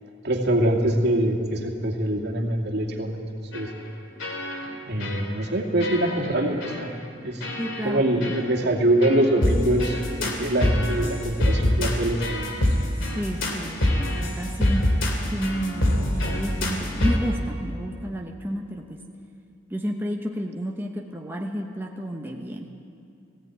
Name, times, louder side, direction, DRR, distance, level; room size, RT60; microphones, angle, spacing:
voice 1, 0.2-3.3 3.5-3.7 4.9-6.9 7.2-7.4 7.8-12.4, right 1 dB, 60° right, 0 dB, 2.5 m, -24 dB
sound 1, 3.5-3.9 4.2-4.8 5.0-5.5 5.8-6.3 6.6-6.9 7.4-7.9 8.2-8.4 9.0-17.2, left 1 dB, 75° left, 3.0 m, -25 dB
voice 2, 7.6-8.3 13.0-15.0 15.3-19.0 19.7-22.7, equal, 10° right, 0 dB, 1.0 m, -31 dB
18.0 x 16.5 x 9.3 m, 2.5 s
head